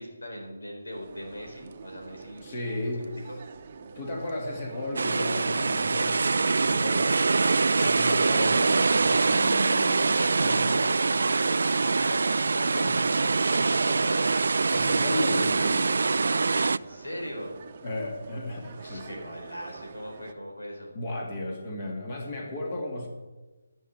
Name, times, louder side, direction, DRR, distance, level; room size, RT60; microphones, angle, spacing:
voice 1, 0.0-2.6 3.0-3.4 9.9-14.4 16.7-17.5 18.8-20.9, equal, 85° left, 1 dB, 4.4 m, -40 dB
sound 1, 0.9-20.3, right 6 dB, 40° right, 0.8 m, -46 dB
voice 2, 2.4-3.3 3.8-10.7 12.7-13.4 14.7-16.7 17.8-19.2 20.9-23.1, left 1 dB, 40° left, 0 dB, 2.5 m, -35 dB
sound 2, 5.0-16.8, right 4 dB, 70° right, 0.3 m, -24 dB
11.5 x 6.3 x 8.8 m, 1.2 s
figure-of-eight pair, 160°, 0 cm